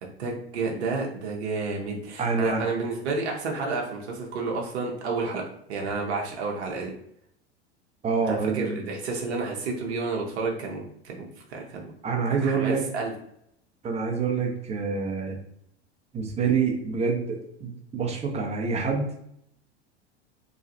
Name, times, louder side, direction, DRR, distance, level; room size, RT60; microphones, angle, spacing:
voice 1, 0.2-5.4 5.7-6.9 8.2-11.2 11.5-11.9 12.3-13.1, right 3 dB, 70° right, -1 dB, 0.7 m, -30 dB
voice 2, 2.2-2.6 8.0-8.8 12.0-12.8 13.8-15.4 16.1-19.1, right 5 dB, 20° right, 1 dB, 0.7 m, -26 dB
3.0 x 2.4 x 2.7 m, 0.72 s
figure-of-eight pair, 85°, 34 cm